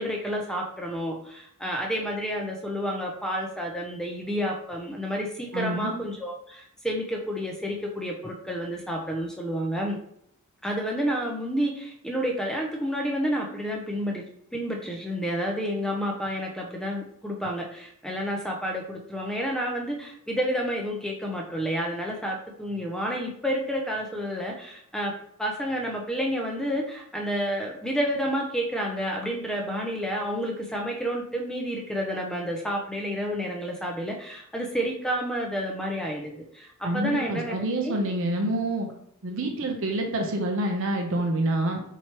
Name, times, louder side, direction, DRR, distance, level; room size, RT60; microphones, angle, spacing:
voice 1, 0.0-10.0 10.6-14.2 14.5-25.1 25.4-38.0 39.3-39.5, equal, 5° left, 0 dB, 0.4 m, -30 dB
voice 2, 5.5-5.9 36.8-38.9 39.2-41.8, right 1 dB, 65° right, 2 dB, 0.6 m, -27 dB
4.6 x 3.0 x 2.9 m, 0.73 s
head